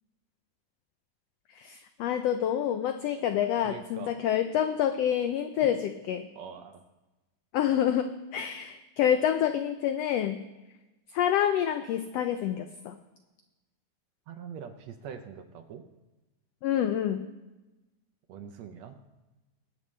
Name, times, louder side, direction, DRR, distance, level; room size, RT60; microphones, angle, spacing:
voice 1, 1.6-6.3 7.5-10.4 11.1-12.9 16.6-17.2, left 10 dB, 90° left, 8 dB, 1.4 m, -27 dB
voice 2, 3.6-4.3 5.6-5.7 6.3-6.8 14.3-15.8 18.3-19.0, right 7 dB, 70° right, 7 dB, 1.7 m, -43 dB
21.5 x 8.5 x 3.2 m, 1.1 s
omnidirectional pair, 3.5 m